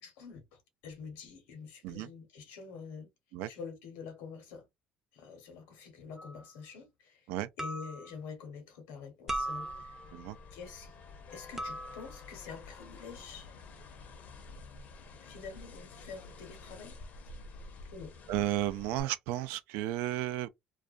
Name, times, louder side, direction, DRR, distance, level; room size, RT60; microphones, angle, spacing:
voice 1, 0.0-3.1 3.5-4.7 5.1-7.3 7.6-9.9 10.5-10.9 11.3-13.5 15.2-17.0 17.9-18.2, left 5 dB, 80° left, 1.0 m, -47 dB
sound 1, 6.2-6.4 7.6-8.1 9.3-10.2 11.6-12.2, right 1 dB, 10° right, 0.5 m, -38 dB
sound 2, 9.3-19.0, left 3 dB, 55° left, 0.6 m, -49 dB
voice 2, 18.3-20.5, right 14 dB, 80° right, 0.4 m, -33 dB
2.4 x 2.2 x 2.4 m
supercardioid pair, 90°, 3 cm